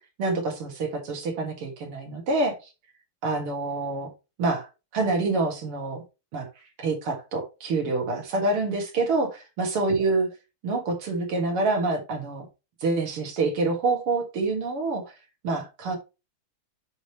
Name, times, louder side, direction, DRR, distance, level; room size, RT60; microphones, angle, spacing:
voice 1, 0.2-2.6 3.2-4.1 4.4-4.7 4.9-6.0 6.3-6.5 6.8-10.3 10.6-12.4 12.8-15.1 15.4-16.0, right 3 dB, 85° right, 2 dB, 2.7 m, -26 dB
10.0 x 3.4 x 2.9 m, 0.27 s
omnidirectional pair, 2.4 m